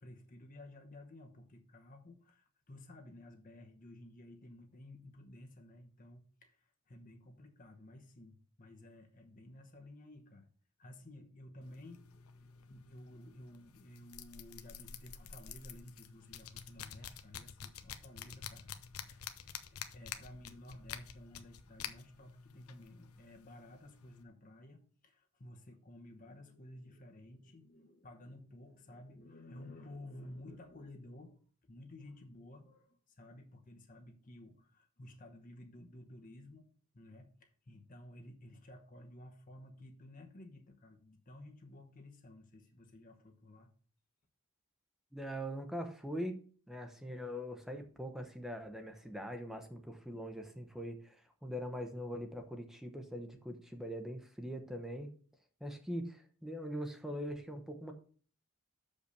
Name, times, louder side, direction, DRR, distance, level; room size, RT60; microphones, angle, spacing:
voice 1, 0.0-10.5 10.8-18.7 19.1-36.7 36.9-43.7, left 1 dB, 40° left, 3 dB, 1.0 m, -54 dB
sound 1, 11.6-24.2, left 8 dB, 80° left, 0.8 m, -49 dB
voice 2, 45.1-46.4 46.7-55.1 55.6-57.9, equal, ahead, 5 dB, 0.9 m, -42 dB
6.9 x 5.3 x 6.7 m, 0.44 s
head